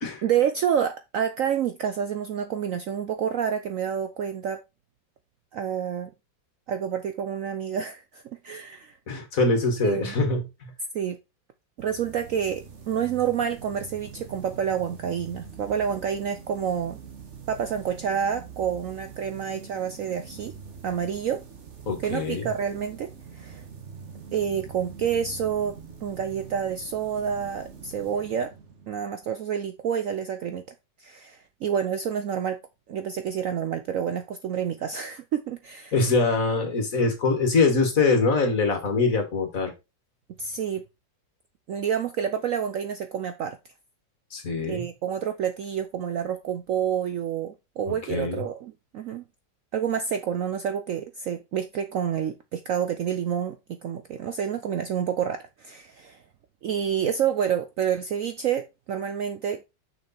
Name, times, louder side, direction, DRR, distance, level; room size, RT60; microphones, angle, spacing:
voice 1, 0.2-4.6 5.5-6.1 6.7-9.0 9.8-10.1 10.9-11.2 11.8-17.0 17.5-20.5 20.8-21.4 22.0-23.6 24.3-28.5 28.9-30.6 31.0-32.6 32.9-35.9 40.4-40.8 41.7-43.6 44.7-49.2 49.7-53.6 53.8-56.2 56.6-59.6, right 8 dB, 65° right, 0.8 m, -28 dB
voice 2, 9.1-10.4 21.9-22.4 35.9-39.7 44.3-44.9 47.9-48.4, left 3 dB, 50° left, 2.1 m, -23 dB
sound 1, 11.8-29.3, right 6 dB, 45° right, 1.6 m, -44 dB
6.3 x 6.0 x 4.2 m
omnidirectional pair, 1.9 m